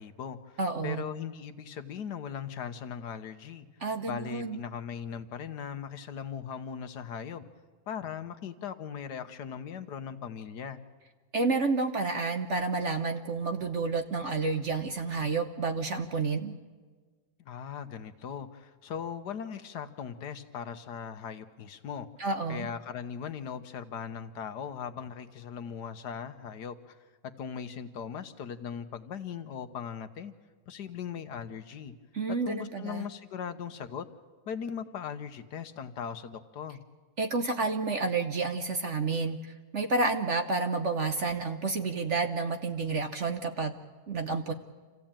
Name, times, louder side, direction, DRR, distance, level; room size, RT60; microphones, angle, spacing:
voice 1, 0.0-3.7 4.1-7.4 7.9-10.8 17.4-22.1 22.5-27.0 27.4-30.3 30.7-31.9 32.3-34.1 34.4-36.8, left 7 dB, 70° left, 10 dB, 1.5 m, -39 dB
voice 2, 0.6-1.1 3.8-4.6 11.3-16.5 22.2-22.7 32.1-33.0 37.2-43.7 44.1-44.5, right 3 dB, 50° right, 7 dB, 1.1 m, -30 dB
26.5 x 15.5 x 8.9 m, 1.4 s
omnidirectional pair, 1.9 m